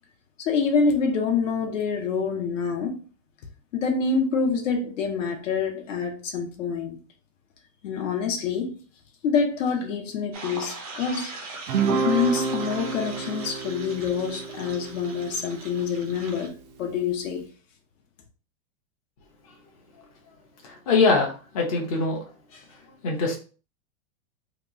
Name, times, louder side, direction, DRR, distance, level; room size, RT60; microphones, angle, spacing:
voice 1, 0.4-3.0 3.7-7.0 7.8-8.8 9.2-11.3 11.9-17.4, left 5 dB, 60° left, 0.8 m, -26 dB
sound 1, 10.3-16.5, right 3 dB, 30° right, 0.5 m, -40 dB
Guitar, 11.7-16.3, right 5 dB, 90° right, 0.8 m, -30 dB
voice 2, 20.6-22.2 22.5-23.4, left 3 dB, 25° left, 0.6 m, -24 dB
2.9 x 2.3 x 3.6 m
supercardioid pair, 180°, 42 cm